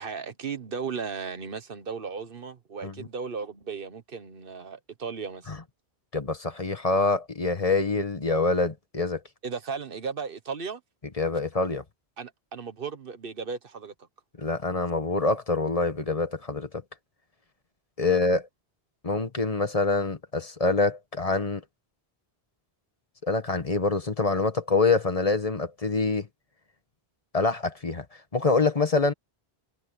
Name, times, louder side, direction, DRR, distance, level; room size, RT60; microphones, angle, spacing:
voice 1, 0.0-5.5 9.4-10.8 12.2-13.9 18.0-18.2, right 5 dB, 60° right, 1.3 m, -36 dB
voice 2, 6.1-9.2 11.2-11.8 14.4-16.7 18.0-18.5 19.0-21.6 23.2-26.3 27.3-28.0 28.3-29.1, left 3 dB, 35° left, 1.5 m, -25 dB
omnidirectional pair, 1.1 m